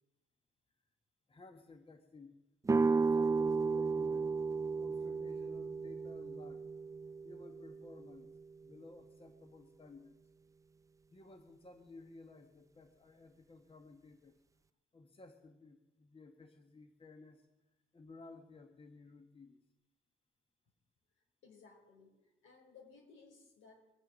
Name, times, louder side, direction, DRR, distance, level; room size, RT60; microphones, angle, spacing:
voice 1, 1.3-2.4 2.7-4.3 4.8-6.7 7.2-10.2 11.1-14.4 14.9-17.5 17.9-19.6, left 3 dB, 30° left, 6 dB, 1.3 m, -56 dB
sound 1, 2.7-8.4, right 4 dB, 15° right, 0.4 m, -34 dB
voice 2, 21.4-23.9, left 4 dB, 75° left, 2 dB, 4.2 m, -60 dB
23.0 x 8.0 x 6.2 m, 1.0 s
cardioid pair, 90°, 20 cm